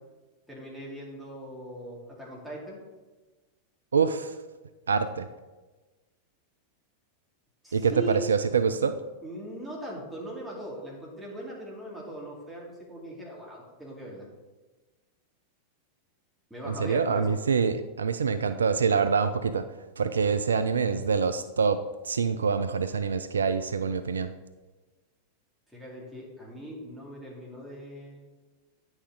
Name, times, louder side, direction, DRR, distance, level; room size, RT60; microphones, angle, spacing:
voice 1, 0.5-2.8 7.6-8.2 9.2-14.3 16.5-17.4 25.7-28.2, equal, ahead, -5 dB, 2.7 m, -40 dB
voice 2, 3.9-4.4 4.9-5.3 7.7-9.0 16.6-19.7 20.0-24.3, right 5 dB, 70° right, 11 dB, 0.3 m, -25 dB
9.5 x 6.2 x 3.9 m, 1.2 s
figure-of-eight pair, 90°, 0 cm